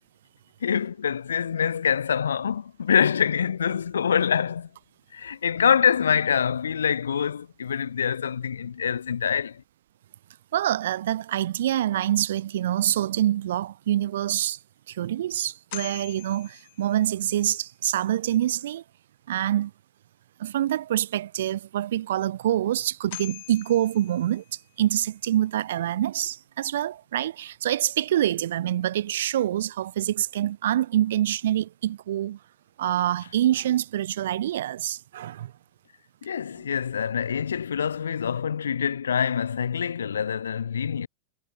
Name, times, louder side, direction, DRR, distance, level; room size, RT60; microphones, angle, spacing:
voice 1, 0.6-4.7 5.1-9.6 36.2-41.1, left 7 dB, 70° left, 0.5 m, -25 dB
voice 2, 10.5-14.6 14.9-18.8 19.3-19.7 20.4-24.4 24.8-32.4 32.8-35.5, right 12 dB, 60° right, 1.4 m, -26 dB
sound 1, 14.3-14.4 14.9-15.0 15.7-17.3 22.4-22.5 23.1-24.8, left 20 dB, 50° left, 3.5 m, -43 dB
figure-of-eight pair, 90°, 0 cm